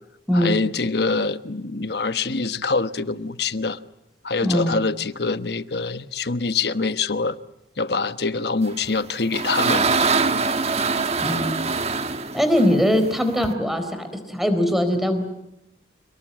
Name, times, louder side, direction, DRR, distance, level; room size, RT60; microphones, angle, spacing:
voice 1, 0.3-3.8 4.2-7.4 7.8-9.9, left 4 dB, 60° left, 1.1 m, -25 dB
voice 2, 4.4-4.8 11.2-11.5 12.3-15.2, equal, ahead, 4.0 m, -21 dB
sound 1, 8.8-13.5, right 4 dB, 35° right, 1.5 m, -23 dB
29.0 x 19.0 x 9.7 m
head